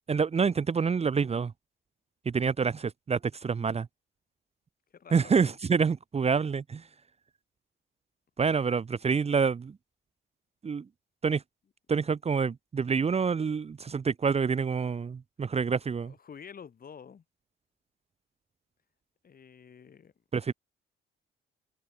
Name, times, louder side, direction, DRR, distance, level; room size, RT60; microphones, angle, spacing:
voice 1, 0.0-1.5 2.2-3.9 5.1-6.8 8.4-9.8 10.6-10.9 11.2-11.4 11.9-16.1 20.3-20.5, right 5 dB, 30° right, 0.9 m, -27 dB
voice 2, 4.9-5.6 15.8-17.2 19.2-20.1, left 7 dB, 45° left, 4.7 m, -49 dB
cardioid pair, 90°, 20 cm